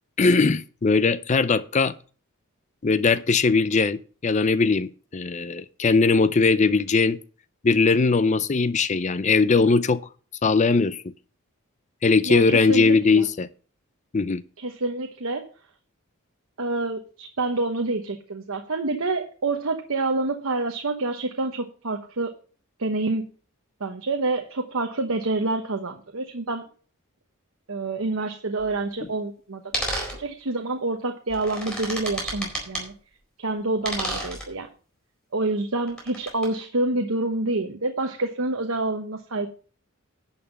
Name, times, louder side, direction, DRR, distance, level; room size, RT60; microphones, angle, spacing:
voice 1, 0.2-1.9 2.8-7.2 7.6-10.0 10.4-11.0 12.0-13.5 14.1-14.4 29.0-29.1, left 4 dB, 35° left, 0.5 m, -20 dB
voice 2, 12.2-13.3 14.6-15.5 16.6-22.3 22.8-23.3 23.8-26.6 27.7-29.8 30.2-32.9 33.4-34.7 35.3-39.5, right 2 dB, 70° right, 1.0 m, -27 dB
sound 1, 28.6-28.7 29.7-30.2 31.3-32.8 33.8-34.4 35.9-36.5, right 1 dB, 5° left, 4.4 m, -30 dB
11.0 x 5.6 x 6.4 m
head